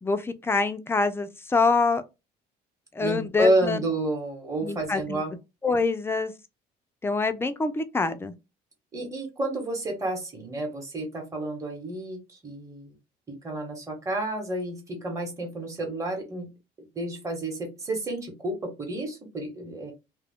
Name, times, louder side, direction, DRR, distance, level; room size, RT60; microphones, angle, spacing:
voice 1, 0.0-2.0 2.9-3.8 4.6-5.2 5.6-6.3 7.0-8.3, left 4 dB, 15° left, 0.4 m, -25 dB
voice 2, 3.0-5.3 8.9-12.9 13.3-16.5 16.9-19.9, right 1 dB, 20° right, 1.0 m, -30 dB
2.3 x 2.1 x 3.5 m
cardioid pair, 110°, 17 cm